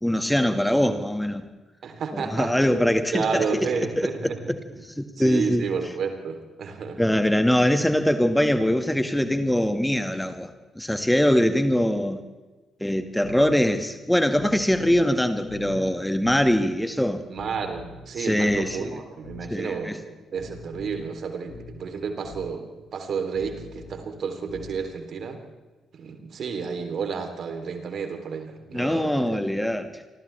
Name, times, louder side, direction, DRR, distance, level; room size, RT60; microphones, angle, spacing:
voice 1, 0.0-1.4 2.1-3.4 3.8-4.6 5.0-5.7 7.0-10.5 10.8-12.2 12.8-17.2 18.2-19.0 19.5-20.0 28.7-29.9, equal, 5° left, 8 dB, 1.9 m, -23 dB
voice 2, 1.8-2.8 3.1-4.4 4.7-4.8 5.2-7.1 17.3-25.4 25.9-29.4, right 5 dB, 55° right, 5 dB, 3.4 m, -31 dB
sound 1, 13.2-13.6 14.4-15.1 15.5-15.8 16.2-16.6 17.4-18.1 18.5-18.8 19.2-19.6 20.4-21.1 21.5-21.8 22.2-22.5 23.4-24.0 24.5-24.8, left 3 dB, 70° left, 7.0 m, -42 dB
30.0 x 26.0 x 3.5 m, 1.2 s
figure-of-eight pair, 40°, 0 cm